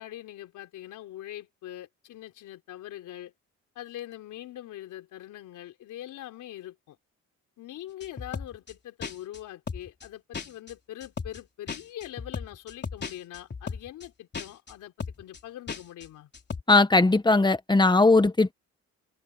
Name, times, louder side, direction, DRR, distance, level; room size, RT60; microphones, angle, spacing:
voice 1, 0.0-3.3 3.8-7.0 7.6-16.3, left 13 dB, 85° left, 4.1 m, -43 dB
sound 1, 8.0-8.7 9.0-9.4 9.7-10.1 10.3-10.7 11.0-11.4 11.7-14.1 14.3-14.7 15.0-15.4 15.7-16.1 16.3-16.6, left 5 dB, 35° left, 3.8 m, -36 dB
voice 2, 16.7-18.5, left 3 dB, 15° left, 1.5 m, -19 dB
cardioid pair, 90°, 30 cm